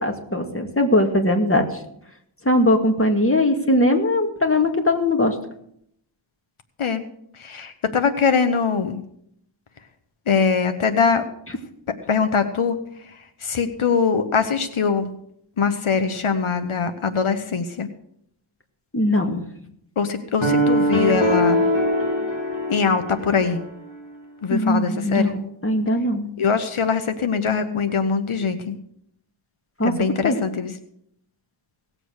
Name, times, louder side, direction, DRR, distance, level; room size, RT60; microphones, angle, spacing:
voice 1, 0.0-1.6 2.5-5.3 18.9-19.4 24.5-26.3 29.8-29.9 30.2-30.4, left 1 dB, 25° left, 4 dB, 2.2 m, -20 dB
voice 2, 7.4-9.0 10.3-11.2 12.1-12.8 13.4-15.1 15.6-17.9 20.0-21.6 22.7-23.6 24.4-25.3 26.4-28.8 29.8-30.7, left 5 dB, 85° left, 9 dB, 1.1 m, -22 dB
sound 1, 20.4-23.7, equal, 65° left, 3.0 m, -22 dB
18.0 x 7.6 x 6.5 m, 0.72 s
wide cardioid pair, 55°, 48 cm